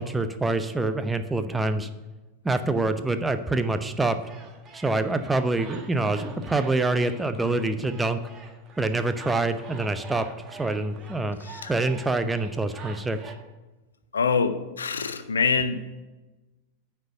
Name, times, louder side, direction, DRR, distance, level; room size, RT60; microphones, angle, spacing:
voice 1, 0.0-1.9 2.4-4.2 4.7-8.2 8.8-10.2 10.5-11.4 11.7-13.2, right 2 dB, 10° right, 9 dB, 0.6 m, -26 dB
sound 1, 4.1-13.3, right 4 dB, 25° right, 1.3 m, -46 dB
voice 2, 14.1-15.9, left 5 dB, 70° left, 12 dB, 0.5 m, -25 dB
9.2 x 4.5 x 7.5 m, 1.1 s
figure-of-eight pair, 90°, 0 cm